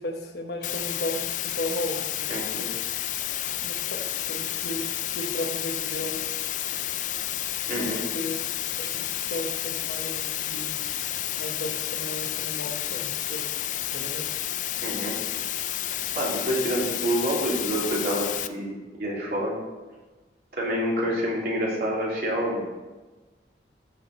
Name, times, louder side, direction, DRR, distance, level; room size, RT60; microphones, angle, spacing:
voice 1, 0.0-2.3 3.6-4.8 5.1-6.2 7.7-8.4 8.8-10.7 11.4-13.5 13.9-14.3, left 1 dB, 65° left, 3 dB, 1.2 m, -35 dB
sound 1, 0.6-18.5, left 12 dB, 45° left, 0.3 m, -31 dB
voice 2, 2.3-2.7 7.7-8.0 14.8-15.2 15.5-15.6 16.1-19.6 20.5-22.6, equal, 60° right, -5 dB, 3.2 m, -27 dB
13.5 x 4.9 x 4.3 m, 1.2 s
head